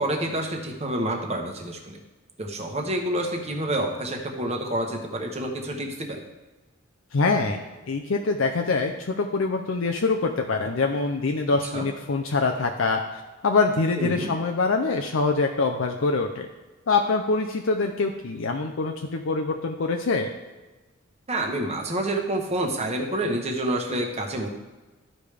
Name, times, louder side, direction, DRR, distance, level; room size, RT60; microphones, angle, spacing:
voice 1, 0.0-2.0 2.4-6.2 11.7-11.8 14.0-14.3 21.3-24.5, right 1 dB, 30° right, 2 dB, 1.1 m, -28 dB
voice 2, 7.1-16.5 16.9-20.3, left 3 dB, 70° left, 3 dB, 0.6 m, -24 dB
13.0 x 5.1 x 3.4 m, 1.2 s
head